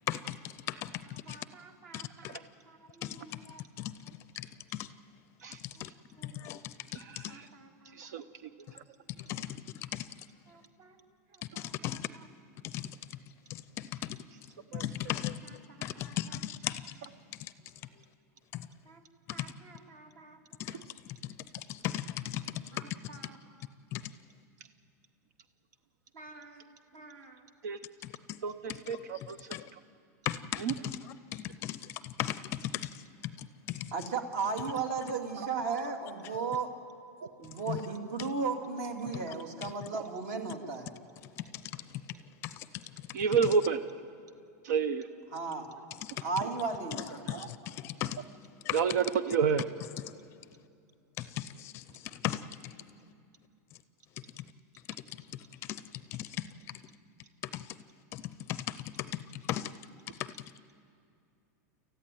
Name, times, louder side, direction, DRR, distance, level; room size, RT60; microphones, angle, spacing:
voice 1, 1.0-2.4 2.7-3.6 6.2-6.4 7.3-8.2 8.6-8.8 10.5-11.0 11.3-12.3 15.4-16.4 18.9-19.0 19.3-20.4 22.7-23.4 26.1-26.6 26.9-27.4 33.9-36.7 37.1-40.9 45.3-45.7 46.2-47.4, right 4 dB, 55° right, 4 dB, 2.7 m, -37 dB
voice 2, 6.9-7.5 7.9-8.2 8.7-8.8 14.7-15.1 17.0-17.1 20.7-20.8 27.6-27.8 28.4-29.5 30.5-30.7 39.9-40.0 43.1-43.8 44.6-45.1 46.4-46.5 47.3-47.5 48.7-49.7, right 6 dB, 85° right, 12 dB, 0.9 m, -30 dB
voice 3, 14.8-15.3 15.8-16.7 21.8-22.0 22.3-22.4 23.9-24.0 29.5-29.6 30.3-30.6 31.6-31.7 32.2-32.3 48.0-48.1 48.7-48.8 52.2-52.4 59.5-59.6, left 13 dB, 30° left, 15 dB, 0.5 m, -33 dB
28.0 x 14.5 x 9.3 m, 2.4 s
supercardioid pair, 170°, 9 cm